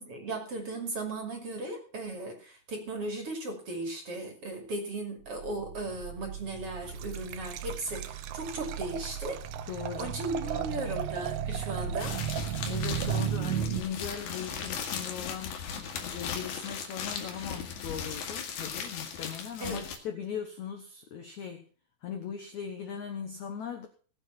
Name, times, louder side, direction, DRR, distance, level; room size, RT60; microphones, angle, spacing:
voice 1, 0.0-9.4 10.0-12.2 19.6-19.8, right 2 dB, 40° right, 3 dB, 2.9 m, -36 dB
sound 1, 5.4-13.8, right 8 dB, 60° right, 2.0 m, -35 dB
Liquid, 6.8-13.7, right 13 dB, 75° right, 2.5 m, -41 dB
voice 2, 9.7-10.1 10.4-10.8 12.7-15.6 16.1-21.7 22.0-23.9, left 7 dB, 70° left, 6 dB, 1.8 m, -39 dB
sound 2, 12.0-20.0, left 7 dB, 85° left, 4.3 m, -37 dB
18.5 x 7.8 x 5.8 m, 0.42 s
omnidirectional pair, 5.0 m